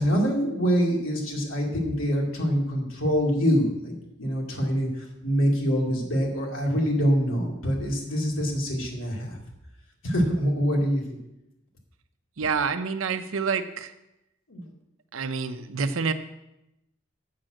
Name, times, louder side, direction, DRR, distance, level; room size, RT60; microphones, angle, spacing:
voice 1, 0.0-3.9 4.2-9.4 10.0-11.0 14.5-14.7, equal, 80° left, -1 dB, 2.4 m, -25 dB
voice 2, 12.4-13.9 15.1-16.1, right 5 dB, 80° right, 10 dB, 0.7 m, -27 dB
7.5 x 6.3 x 7.6 m, 0.90 s
head